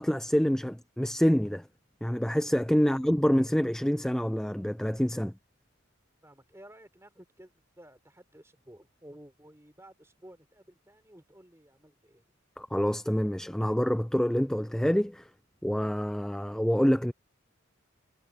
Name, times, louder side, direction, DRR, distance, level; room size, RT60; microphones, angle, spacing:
voice 1, 0.0-1.6 2.0-5.3 12.6-15.3 15.6-17.1, equal, 5° left, 0.4 m, -26 dB
voice 2, 6.2-7.5 7.8-12.3, right 1 dB, 15° right, 3.9 m, -54 dB
head